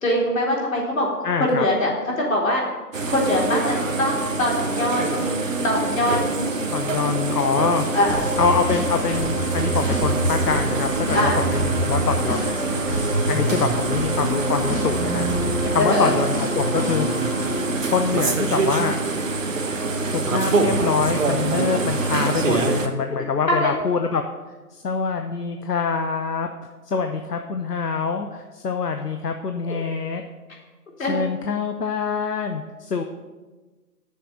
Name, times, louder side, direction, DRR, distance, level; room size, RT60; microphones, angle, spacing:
voice 1, 0.0-1.1 1.4-2.6 3.1-4.1 4.4-6.5 7.9-8.3 11.1-11.4 15.8-16.1 23.5-23.7 29.7-29.8 31.0-31.1, left 1 dB, 55° left, -3 dB, 3.9 m, -22 dB
voice 2, 1.2-1.6 6.7-7.9 8.4-12.6 13.3-15.3 15.7-17.1 17.9-19.0 20.1-24.2 24.7-26.5 26.9-30.2 31.1-33.0, left 5 dB, 75° left, 6 dB, 0.9 m, -25 dB
sound 1, 2.9-22.9, right 3 dB, 50° right, 1.1 m, -25 dB
sound 2, 8.1-17.7, equal, 10° left, 1.8 m, -30 dB
sound 3, 8.4-18.8, right 2 dB, 35° right, 1.4 m, -29 dB
7.7 x 6.8 x 8.1 m, 1.2 s
figure-of-eight pair, 155°, 48 cm